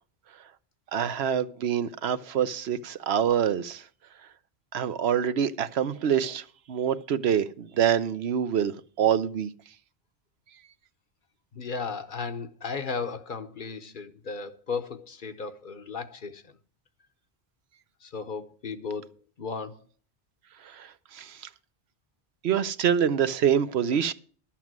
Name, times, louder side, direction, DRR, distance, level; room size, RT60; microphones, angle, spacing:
voice 1, 0.9-3.8 4.7-9.5 20.7-20.9 21.1-21.3 22.4-24.1, right 8 dB, 75° right, 1.0 m, -26 dB
voice 2, 11.5-16.4 18.0-19.1 19.4-19.8, left 5 dB, 55° left, 1.0 m, -35 dB
12.0 x 7.3 x 6.1 m
omnidirectional pair, 1.1 m